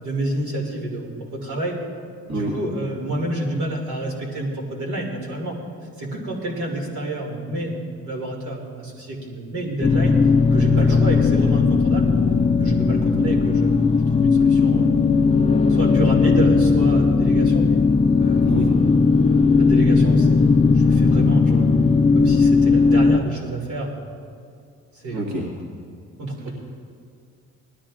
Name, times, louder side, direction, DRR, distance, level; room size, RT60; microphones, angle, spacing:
voice 1, 0.0-1.8 2.3-5.6 6.0-10.2 10.5-12.1 12.6-13.8 14.2-14.9 15.7-17.8 18.2-18.5 19.6-20.4 20.7-21.7 22.1-24.0 24.9-25.2 26.2-26.5, right 1 dB, 80° right, -1 dB, 2.4 m, -28 dB
sound 1, 9.8-23.2, left 4 dB, 20° left, 0.4 m, -17 dB
voice 2, 25.1-25.4, right 1 dB, 65° right, -3 dB, 2.0 m, -27 dB
18.5 x 12.5 x 2.5 m, 2.3 s
cardioid pair, 90°, 30 cm